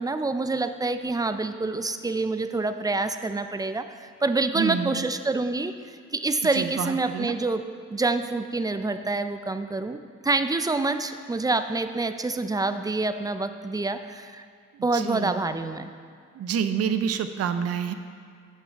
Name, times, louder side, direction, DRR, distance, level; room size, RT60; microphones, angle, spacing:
voice 1, 0.0-14.4 14.8-15.9, right 3 dB, 10° right, 10 dB, 0.4 m, -27 dB
voice 2, 4.5-5.1 6.5-7.3 14.7-15.4 16.3-17.9, right 7 dB, 55° right, 10 dB, 0.6 m, -28 dB
6.7 x 6.1 x 7.4 m, 2.2 s
cardioid pair, 90°, 30 cm